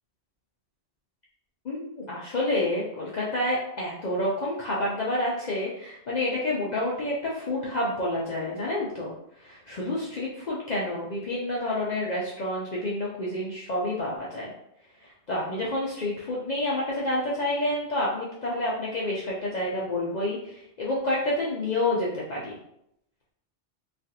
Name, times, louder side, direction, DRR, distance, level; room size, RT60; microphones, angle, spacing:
voice 1, 1.6-9.1 9.4-14.5 15.0-22.6, left 1 dB, 55° left, -5 dB, 0.5 m, -29 dB
3.2 x 2.4 x 2.7 m, 0.77 s
omnidirectional pair, 1.2 m